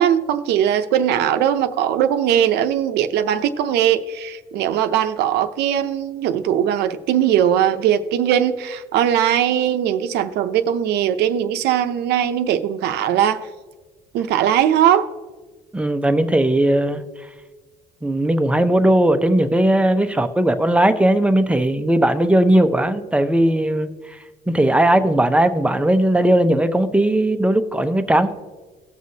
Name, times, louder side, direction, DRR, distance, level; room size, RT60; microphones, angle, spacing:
voice 1, 0.0-13.4 14.1-15.1, right 10 dB, 80° right, 0.7 m, -19 dB
voice 2, 15.7-17.0 18.0-23.9 24.5-28.3, right 1 dB, 5° right, 0.6 m, -17 dB
18.0 x 6.1 x 2.8 m
cardioid pair, 110°, 17 cm